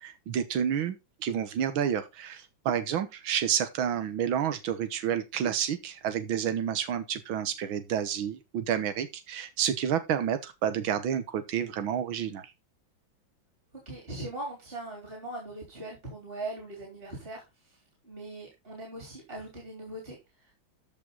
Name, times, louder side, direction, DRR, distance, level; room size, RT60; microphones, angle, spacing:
voice 1, 0.0-12.4, right 9 dB, 90° right, 1.9 m, -30 dB
voice 2, 13.7-17.4 17.7-17.8 18.0-20.5, right 2 dB, 25° right, 3.7 m, -40 dB
14.0 x 5.5 x 3.9 m
omnidirectional pair, 2.1 m